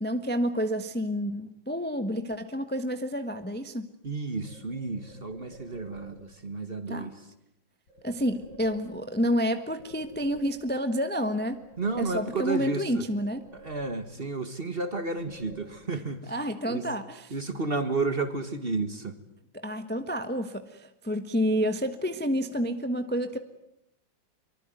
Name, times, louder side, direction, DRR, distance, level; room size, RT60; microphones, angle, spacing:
voice 1, 0.0-3.9 6.9-7.1 8.0-11.7 12.0-13.5 16.3-17.3 19.5-23.4, equal, 5° left, 1.1 m, -29 dB
voice 2, 4.0-7.1 11.8-13.0 13.6-16.3 16.7-16.8 17.3-19.2, right 3 dB, 30° right, 1.8 m, -32 dB
sound 1, 4.4-6.4 7.9-9.2 9.6-11.0 11.3-12.7 13.0-14.4 14.7-16.1, right 2 dB, 60° left, 6.9 m, -52 dB
25.0 x 23.5 x 9.3 m
omnidirectional pair, 2.1 m